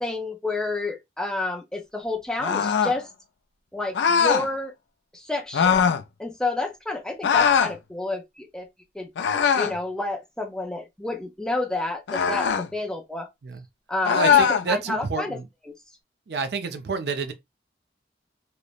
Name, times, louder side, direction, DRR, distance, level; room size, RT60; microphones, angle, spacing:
voice 1, 0.0-3.1 3.7-4.7 5.1-5.9 6.2-8.7 8.9-9.1 9.5-13.3 13.9-14.4 14.7-15.4 15.7-15.8, left 2 dB, 5° left, 0.4 m, -30 dB
sound 1, 2.4-3.0 3.9-4.5 5.5-6.0 7.2-7.8 9.2-9.8 12.1-12.7 14.0-14.7, left 7 dB, 85° left, 0.4 m, -21 dB
voice 2, 14.1-15.4 16.3-17.3, right 4 dB, 70° right, 0.5 m, -29 dB
2.9 x 2.0 x 2.3 m
head